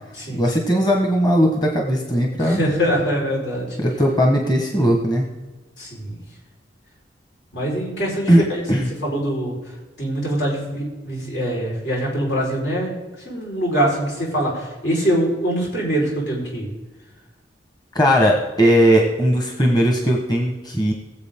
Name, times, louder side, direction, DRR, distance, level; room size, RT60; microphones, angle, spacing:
voice 1, 0.3-2.6 3.8-5.3 8.3-8.4 8.7-8.9 17.9-20.9, equal, 25° left, 1 dB, 1.5 m, -18 dB
voice 2, 2.4-3.8 5.8-6.2 7.5-8.6 9.0-9.6 10.0-12.9 13.2-16.7, equal, 75° left, -4 dB, 5.0 m, -23 dB
20.5 x 7.6 x 3.8 m, 1.2 s
head